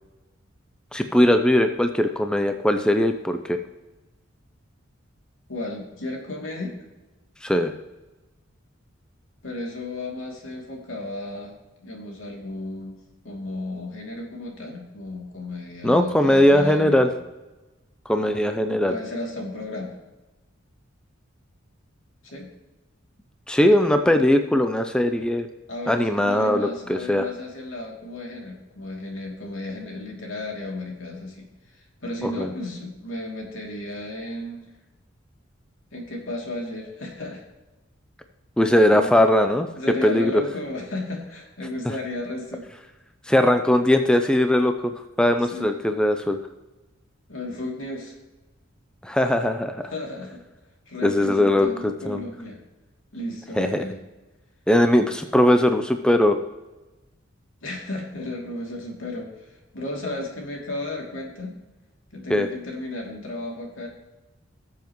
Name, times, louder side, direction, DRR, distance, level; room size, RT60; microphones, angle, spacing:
voice 1, 0.9-3.6 7.4-7.7 15.8-17.1 18.1-18.9 23.5-25.5 25.9-27.2 32.2-32.5 38.6-39.7 40.0-40.3 43.3-44.9 45.2-46.4 49.0-49.9 51.0-52.2 53.6-53.8 54.7-56.4 62.3-62.5, left 1 dB, 5° left, 6 dB, 0.5 m, -20 dB
voice 2, 5.5-6.8 9.4-13.0 13.2-17.2 18.7-20.0 22.2-22.5 25.7-34.7 35.9-37.5 38.9-39.2 39.8-42.7 45.5-45.7 47.3-48.2 49.9-50.4 50.9-52.6 53.1-54.0 57.6-61.6 62.1-63.9, left 2 dB, 75° left, -1 dB, 2.8 m, -34 dB
18.5 x 7.2 x 3.1 m, 1.1 s
head